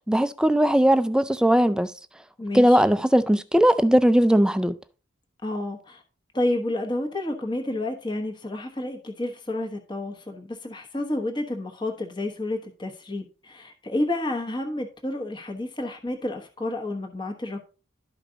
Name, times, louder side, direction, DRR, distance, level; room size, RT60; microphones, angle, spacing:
voice 1, 0.1-1.9 2.5-4.8, equal, 5° right, 0.3 m, -19 dB
voice 2, 2.4-2.8 5.4-6.0 6.3-17.6, left 1 dB, 25° left, 1.1 m, -30 dB
12.0 x 5.1 x 3.9 m
head